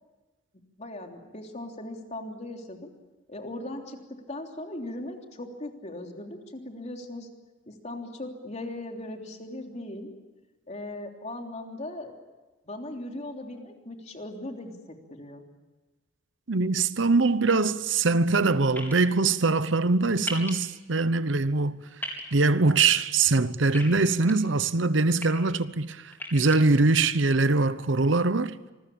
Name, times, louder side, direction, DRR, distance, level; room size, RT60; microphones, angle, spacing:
voice 1, 0.8-2.9 3.3-7.3 7.7-10.1 10.7-12.1 12.6-15.4, left 1 dB, 35° left, 3.3 m, -38 dB
voice 2, 16.5-21.9 22.3-26.0 26.3-28.5, right 3 dB, 70° right, 0.9 m, -23 dB
sound 1, 18.8-18.9 20.3-20.5 22.0-22.2 23.7-24.3 25.0-25.3 26.1-26.6, left 1 dB, 10° left, 4.2 m, -35 dB
27.0 x 21.0 x 8.7 m
head